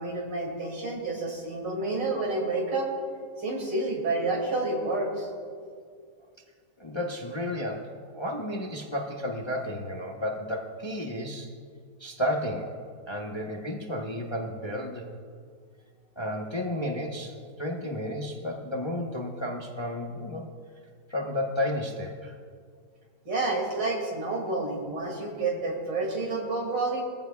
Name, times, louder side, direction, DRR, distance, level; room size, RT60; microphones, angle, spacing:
voice 1, 0.0-2.9 3.4-5.3 23.2-27.0, right 2 dB, 90° right, -1 dB, 3.3 m, -29 dB
voice 2, 6.8-11.5 12.0-12.7 13.1-15.1 16.2-20.5 21.1-22.3, left 1 dB, 20° left, -1 dB, 0.8 m, -32 dB
21.0 x 14.5 x 2.3 m, 2.1 s
omnidirectional pair, 1.9 m